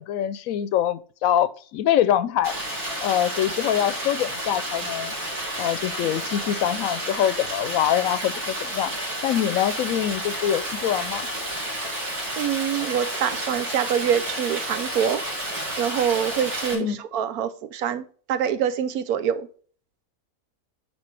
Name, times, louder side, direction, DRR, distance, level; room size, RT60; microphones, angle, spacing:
voice 1, 0.0-2.5 3.0-5.1 5.6-8.9 9.2-11.3 16.7-17.0, left 11 dB, 70° left, 0.9 m, -24 dB
Stream, 2.4-16.7, right 1 dB, 65° right, 3.2 m, -31 dB
voice 2, 12.4-15.2 15.8-19.5, right 9 dB, 80° right, 1.2 m, -25 dB
9.6 x 4.3 x 3.3 m
omnidirectional pair, 1.5 m